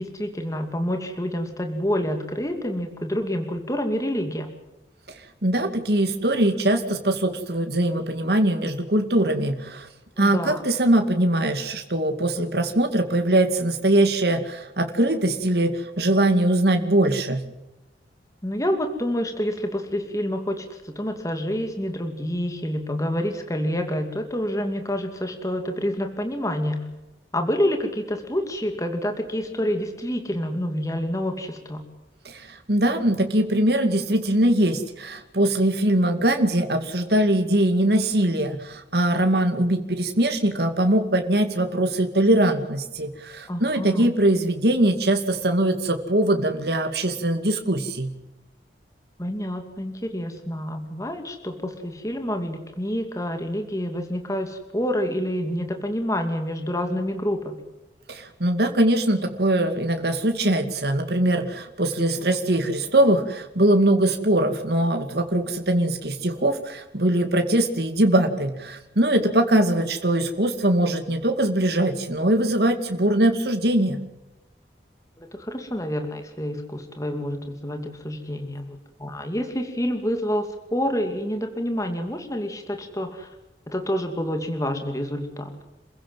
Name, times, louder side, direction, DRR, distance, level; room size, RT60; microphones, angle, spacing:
voice 1, 0.0-4.5 10.2-10.6 18.4-26.8 27.3-31.8 43.5-44.1 49.2-57.6 62.3-62.4 75.2-83.3 83.7-85.6, equal, 20° left, 5 dB, 2.5 m, -28 dB
voice 2, 5.4-9.9 10.2-17.5 32.2-48.1 58.1-74.0, right 1 dB, 65° right, 5 dB, 2.4 m, -22 dB
28.5 x 16.0 x 7.6 m, 1.0 s
head